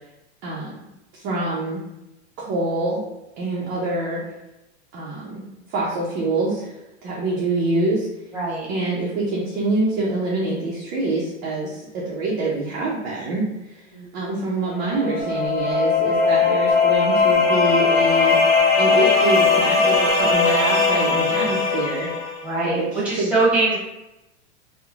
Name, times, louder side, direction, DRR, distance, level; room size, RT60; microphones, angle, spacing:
voice 1, 0.4-0.9 1.1-1.8 2.4-3.0 3.4-4.2 4.9-5.4 5.7-6.7 7.0-8.1 8.7-13.8 14.1-22.1 22.6-23.3, right 2 dB, 25° right, -5 dB, 0.4 m, -25 dB
voice 2, 8.3-8.7 13.9-14.3 22.4-23.8, right 3 dB, 5° right, -7 dB, 0.8 m, -22 dB
sound 1, 14.7-22.5, left 4 dB, 25° left, 0.7 m, -19 dB
3.0 x 2.0 x 2.4 m, 0.94 s
hypercardioid pair, 130°, 37 cm